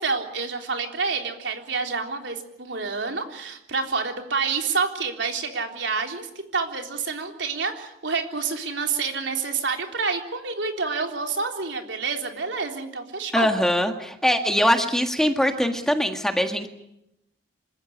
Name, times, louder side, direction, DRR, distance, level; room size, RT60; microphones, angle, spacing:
voice 1, 0.0-13.5, right 4 dB, 75° right, 3 dB, 3.7 m, -28 dB
voice 2, 13.3-16.7, equal, 5° left, 5 dB, 1.8 m, -22 dB
27.0 x 15.0 x 9.9 m, 0.83 s
head